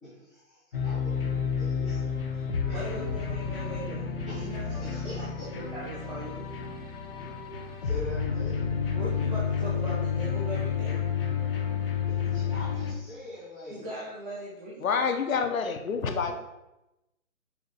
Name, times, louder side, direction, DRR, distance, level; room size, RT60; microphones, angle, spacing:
voice 1, 0.0-3.1 4.2-5.5 7.8-8.5 12.1-13.9 16.2-16.3, left 1 dB, ahead, -20 dB, 0.7 m, -43 dB
sound 1, 0.7-12.9, left 6 dB, 45° left, 0.6 m, -30 dB
voice 2, 2.5-4.1 4.3-4.6 5.2-5.3 5.6-6.5 7.1-7.2 8.9-11.0 13.7-15.0, right 1 dB, 35° right, -6 dB, 0.8 m, -39 dB
voice 3, 14.8-16.3, left 5 dB, 75° left, 6 dB, 0.8 m, -27 dB
5.7 x 2.3 x 3.9 m, 0.94 s
hypercardioid pair, 160°, 41 cm